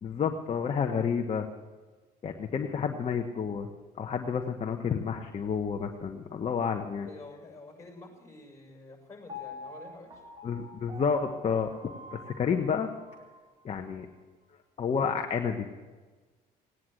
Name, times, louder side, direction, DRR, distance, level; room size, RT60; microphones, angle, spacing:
voice 1, 0.0-1.5 2.2-3.7 4.0-7.1 10.4-11.7 12.1-12.9 13.6-14.1 14.8-15.7, left 6 dB, 40° left, 4 dB, 1.3 m, -30 dB
voice 2, 7.0-10.2, left 3 dB, 20° left, 2 dB, 6.8 m, -48 dB
Piano, 9.3-13.4 13.9-14.0, left 2 dB, 25° right, 4.1 m, -46 dB
18.5 x 9.5 x 7.8 m, 1.3 s
cardioid pair, 110°, 17 cm